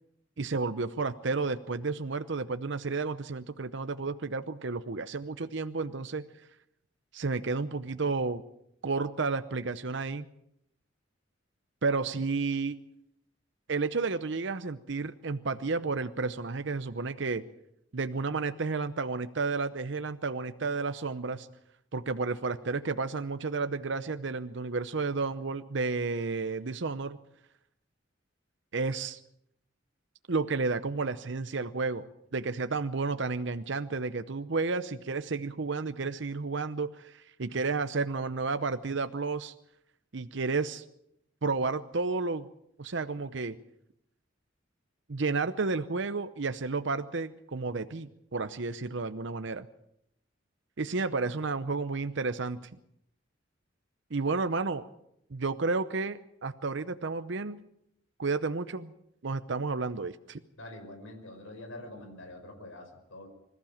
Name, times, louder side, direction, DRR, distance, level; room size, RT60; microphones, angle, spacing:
voice 1, 0.4-6.2 7.1-8.4 8.8-10.3 11.8-12.8 13.7-17.4 17.9-21.5 21.9-27.2 28.7-29.2 30.3-32.1 32.3-39.5 40.1-40.8 41.4-42.5 42.8-43.6 45.1-49.7 50.8-52.6 54.1-54.8 55.3-57.6 58.2-58.9 59.2-60.4, right 4 dB, 65° right, 10 dB, 0.8 m, -31 dB
voice 2, 60.6-63.3, left 1 dB, 90° left, 4 dB, 5.5 m, -45 dB
26.0 x 15.0 x 7.3 m, 0.78 s
head